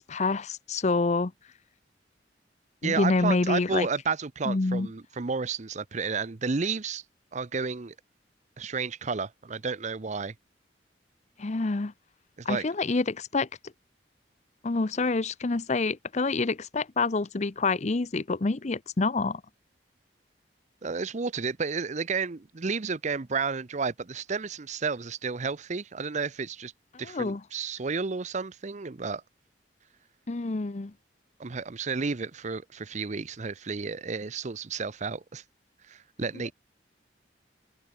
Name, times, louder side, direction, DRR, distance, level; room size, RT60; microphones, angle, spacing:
voice 1, 0.0-1.3 2.8-3.9 4.5-4.9 11.4-11.9 12.5-13.5 14.6-19.4 27.0-27.4 30.3-30.9, left 3 dB, 40° left, 0.7 m, -27 dB
voice 2, 2.8-7.0 7.3-7.9 8.6-10.3 12.4-12.6 20.8-26.7 27.0-29.2 31.4-35.4 35.9-36.5, right 4 dB, 40° right, 0.7 m, -31 dB
head